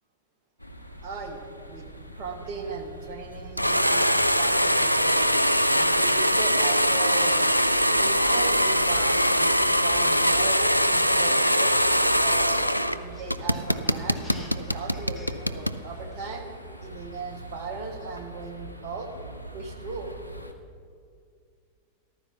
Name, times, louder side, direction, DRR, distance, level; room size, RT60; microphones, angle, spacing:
sound 1, 0.6-20.5, right 1 dB, 90° right, 0.7 m, -42 dB
voice 1, 1.0-1.4 1.7-1.9 2.2-5.3 5.7-7.5 8.0-12.6 13.0-16.4 16.8-19.1 19.5-20.1, right 4 dB, 45° right, 3 dB, 1.7 m, -37 dB
sound 2, 3.6-13.0 13.3-15.8, equal, 90° left, 0.3 m, -22 dB
sound 3, 9.9-16.3, left 1 dB, 10° left, 2.1 m, -48 dB
14.0 x 12.5 x 3.8 m, 2.1 s
figure-of-eight pair, 90°, 0 cm